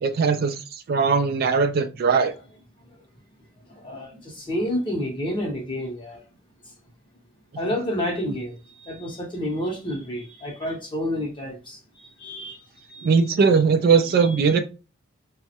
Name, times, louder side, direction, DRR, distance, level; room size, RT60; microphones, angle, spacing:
voice 1, 0.0-2.3 13.0-14.6, right 5 dB, 50° right, 0.3 m, -20 dB
voice 2, 3.8-6.2 7.6-12.6 12.9-13.1, equal, 25° left, 0.7 m, -29 dB
3.3 x 2.0 x 2.7 m
head